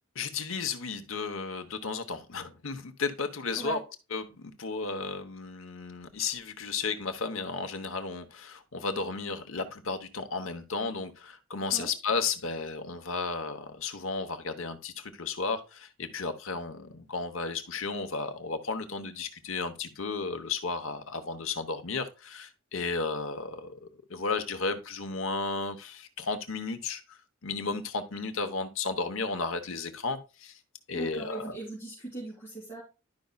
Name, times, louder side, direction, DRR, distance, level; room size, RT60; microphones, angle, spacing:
voice 1, 0.1-3.8 4.1-30.6 30.9-31.6, left 4 dB, 70° left, 0.9 m, -34 dB
voice 2, 30.9-32.8, right 2 dB, 10° left, 2.8 m, -39 dB
11.5 x 5.3 x 2.3 m
head